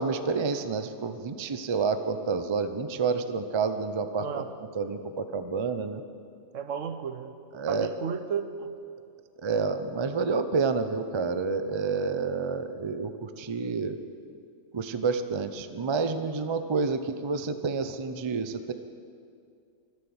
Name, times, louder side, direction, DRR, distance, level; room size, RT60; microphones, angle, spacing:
voice 1, 0.0-4.4 4.7-6.0 7.5-7.9 9.4-14.0 14.7-18.7, right 4 dB, 40° right, 9 dB, 0.4 m, -29 dB
voice 2, 4.2-4.5 6.5-7.3 7.7-8.7, right 7 dB, 65° right, 10 dB, 1.1 m, -33 dB
24.5 x 8.2 x 7.1 m, 2.4 s
omnidirectional pair, 1.5 m